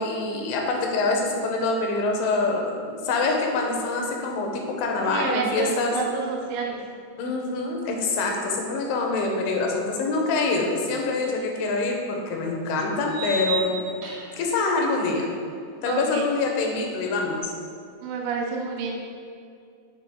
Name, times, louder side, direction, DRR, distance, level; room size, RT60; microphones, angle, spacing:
voice 1, 0.0-6.0 7.2-13.8 14.4-15.3 15.8-17.5, left 3 dB, 85° left, 1 dB, 3.2 m, -25 dB
voice 2, 5.1-5.7 5.9-6.8 15.9-16.3 18.0-19.0, right 5 dB, 85° right, -1 dB, 3.1 m, -29 dB
sound 1, 11.4-11.5 13.1-14.5, right 3 dB, 65° right, 2.6 m, -32 dB
8.1 x 6.3 x 2.2 m, 2.3 s
omnidirectional pair, 5.3 m